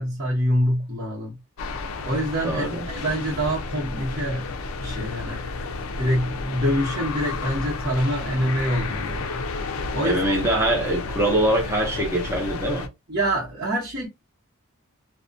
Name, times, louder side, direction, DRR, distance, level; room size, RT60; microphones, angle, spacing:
voice 1, 0.0-1.4 2.0-4.5 4.8-5.4 5.9-9.5 9.9-10.2 13.1-14.1, equal, 45° right, 0.9 m, -25 dB
sound 1, 1.6-12.9, left 3 dB, 70° left, 0.4 m, -32 dB
voice 2, 2.4-3.0 10.0-12.9, right 1 dB, 10° right, 0.6 m, -23 dB
2.4 x 2.1 x 2.4 m
head